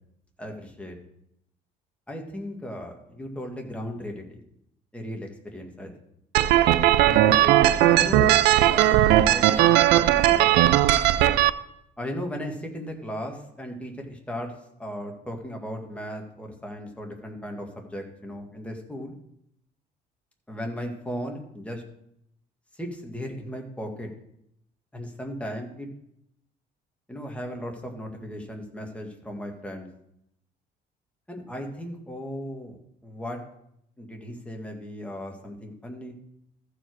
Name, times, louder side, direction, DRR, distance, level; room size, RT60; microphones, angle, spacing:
voice 1, 0.4-1.0 2.1-4.4 4.9-5.9 7.0-9.0 9.3-10.6 12.0-14.5 14.8-19.1 20.5-21.8 22.7-24.1 24.9-25.9 27.1-29.9 31.3-33.4 34.0-36.1, equal, 5° left, 2 dB, 1.8 m, -36 dB
sound 1, 6.3-11.5, right 13 dB, 85° right, 0.4 m, -18 dB
14.5 x 4.9 x 4.7 m, 0.76 s
cardioid pair, 110°, 17 cm